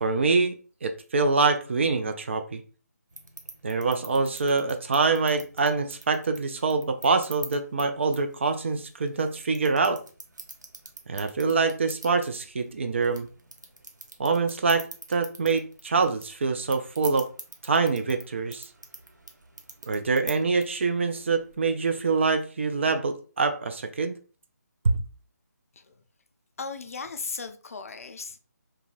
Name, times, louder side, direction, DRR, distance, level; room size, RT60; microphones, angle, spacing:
voice 1, 0.0-2.6 3.6-10.0 11.1-13.3 14.2-14.8 15.1-17.3 17.6-18.7 19.9-24.1 24.8-25.0, right 4 dB, 45° right, 0.4 m, -25 dB
sound 1, 3.1-21.6, right 2 dB, 85° right, 0.6 m, -46 dB
voice 2, 26.6-28.4, left 4 dB, 55° left, 0.4 m, -36 dB
2.7 x 2.3 x 3.0 m
figure-of-eight pair, 150°, 9 cm